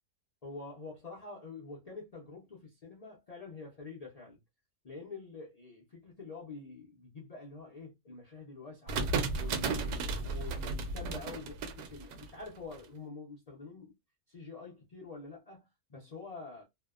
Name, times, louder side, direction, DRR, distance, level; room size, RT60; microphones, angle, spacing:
voice 1, 0.4-4.4 4.8-9.1 9.4-13.9 14.3-16.6, left 4 dB, 90° left, 0.3 m, -46 dB
sound 1, 8.9-12.8, right 4 dB, 90° right, 1.1 m, -34 dB
2.6 x 2.1 x 2.3 m
omnidirectional pair, 1.6 m